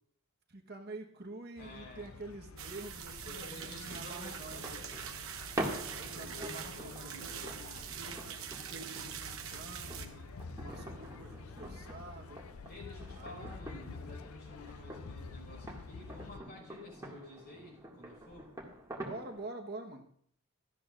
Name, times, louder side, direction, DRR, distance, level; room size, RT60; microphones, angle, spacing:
voice 1, 0.5-4.7 6.0-7.6 8.0-10.1 10.6-12.5 13.2-13.5 14.7-15.0 19.0-20.0, right 2 dB, 45° right, 3 dB, 1.2 m, -47 dB
voice 2, 1.5-2.1 3.2-4.9 6.0-7.9 9.5-10.4 12.6-18.5, left 2 dB, 45° left, 1 dB, 5.2 m, -51 dB
sound 1, 1.6-16.4, left 4 dB, 70° left, 0.5 m, -49 dB
sound 2, 2.6-10.1, right 8 dB, 65° right, 1.0 m, -44 dB
sound 3, 4.4-19.4, right 1 dB, 15° right, 2.1 m, -46 dB
17.0 x 13.0 x 2.5 m, 0.64 s
head